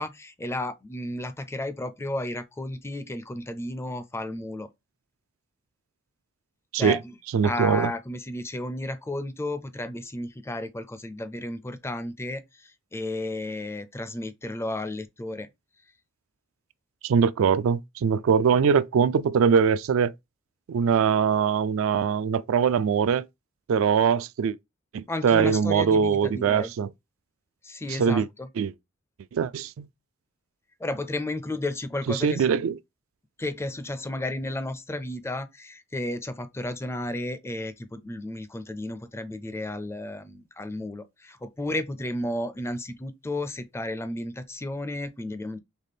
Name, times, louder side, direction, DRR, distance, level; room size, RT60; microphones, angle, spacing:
voice 1, 0.0-4.7 6.7-7.2 7.4-15.5 25.1-26.7 27.6-28.5 30.8-32.5 33.4-45.6, left 1 dB, 10° left, 0.4 m, -33 dB
voice 2, 7.3-7.9 17.0-20.1 20.7-23.2 23.7-24.6 24.9-26.9 28.0-28.3 28.6-28.7 29.3-29.9 32.2-32.7, right 6 dB, 70° right, 0.3 m, -22 dB
4.1 x 3.4 x 3.4 m
head